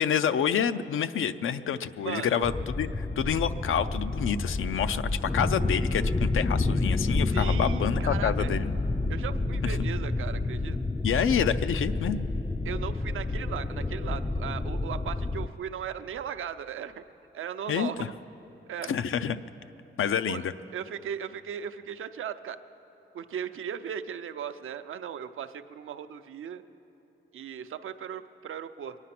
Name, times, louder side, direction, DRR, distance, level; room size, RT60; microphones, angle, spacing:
voice 1, 0.0-8.7 11.0-12.2 17.7-17.9 18.9-19.4 20.0-20.5, left 8 dB, 85° left, 12 dB, 0.5 m, -28 dB
voice 2, 2.0-2.4 7.3-8.6 9.1-10.8 12.6-17.0 17.3-18.1 18.7-18.9 20.3-20.4 20.7-22.6 23.1-26.6 27.3-29.0, right 8 dB, 90° right, 9 dB, 0.6 m, -37 dB
sound 1, 2.4-15.5, left 2 dB, 10° left, 0.3 m, -29 dB
23.0 x 9.7 x 5.9 m, 3.0 s
wide cardioid pair, 115°, 20 cm